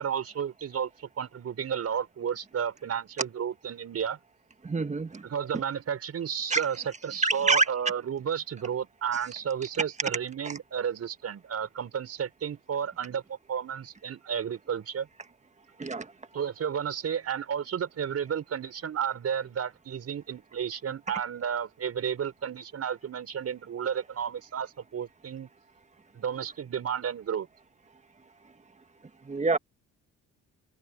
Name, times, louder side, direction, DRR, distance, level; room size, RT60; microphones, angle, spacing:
voice 1, 0.0-4.2 5.2-15.1 16.3-25.5 26.1-27.5, right 8 dB, 55° right, 5.0 m, -32 dB
voice 2, 4.6-5.2 6.5-6.6 7.2-7.7 10.4-10.5 15.8-16.1 29.2-29.6, right 3 dB, 25° right, 1.6 m, -26 dB
cardioid pair, 90°, 30 cm